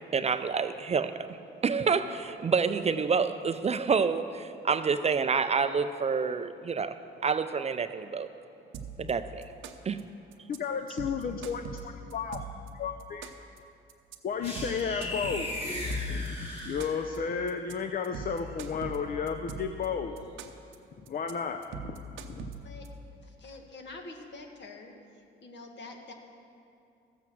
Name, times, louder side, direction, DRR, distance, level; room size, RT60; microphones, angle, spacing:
voice 1, 0.1-1.4 1.6-8.3 9.0-9.5 9.8-10.0, right 5 dB, 35° right, 11 dB, 0.5 m, -28 dB
sound 1, 8.7-9.1 9.4-10.0 10.3-10.6 10.9-12.7 13.0-13.6 13.9-14.2 14.5-16.3 16.6-17.2 17.5-17.7 18.0-19.9 20.2-20.8 21.1-21.3 21.6-22.9, right 6 dB, 80° right, 0.8 m, -41 dB
voice 2, 10.5-12.5 12.7-13.3 14.2-15.5 15.8-20.2 21.0-22.0 22.3-22.5, left 6 dB, 45° left, 6 dB, 0.6 m, -33 dB
sound 2, 14.4-17.3, left 2 dB, 30° left, 2.5 m, -35 dB
voice 3, 23.4-24.9 25.4-26.1, left 3 dB, 65° left, 3 dB, 1.6 m, -45 dB
14.5 x 7.6 x 6.1 m, 2.5 s
cardioid pair, 90°, 20 cm